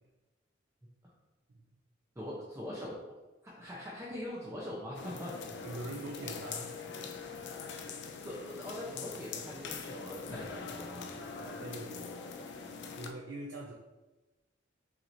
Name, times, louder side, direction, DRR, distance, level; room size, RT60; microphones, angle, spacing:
voice 1, 2.2-3.1 3.4-5.3 8.2-11.1, left 1 dB, 15° right, -6 dB, 0.6 m, -42 dB
sound 1, 4.9-13.1, left 5 dB, 60° left, 0.4 m, -43 dB
voice 2, 5.6-7.7 11.4-12.2 13.0-13.7, right 2 dB, 65° right, 0 dB, 0.4 m, -44 dB
5.7 x 2.9 x 2.6 m, 1.1 s
head